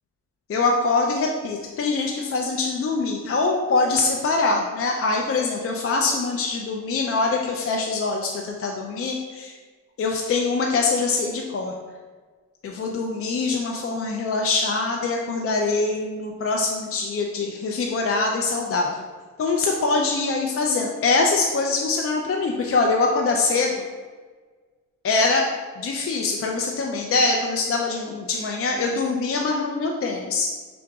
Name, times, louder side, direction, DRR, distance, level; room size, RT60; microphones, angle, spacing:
voice 1, 0.5-9.5 10.0-11.7 12.6-19.0 19.4-23.8 25.0-25.5 25.8-30.5, left 3 dB, 40° left, 0 dB, 0.4 m, -23 dB
4.9 x 3.7 x 2.3 m, 1.4 s
cardioid pair, 100°, 34 cm